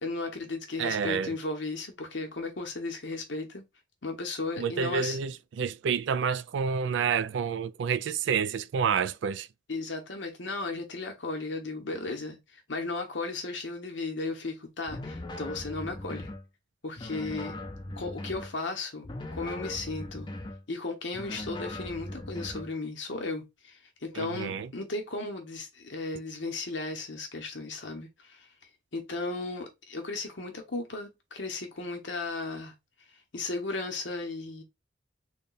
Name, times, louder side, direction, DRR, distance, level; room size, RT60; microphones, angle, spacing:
voice 1, 0.0-3.6 4.0-5.2 9.7-12.4 12.7-16.3 16.8-17.6 18.0-20.3 20.7-28.5 28.9-32.7 33.3-34.6, left 3 dB, 75° left, 1.1 m, -35 dB
voice 2, 0.8-1.4 4.6-9.5 24.1-24.7, right 6 dB, 70° right, 0.3 m, -29 dB
sound 1, 14.9-16.4 17.0-18.5 19.0-20.6 21.1-22.7, left 1 dB, 25° left, 0.5 m, -39 dB
3.5 x 2.3 x 3.9 m
head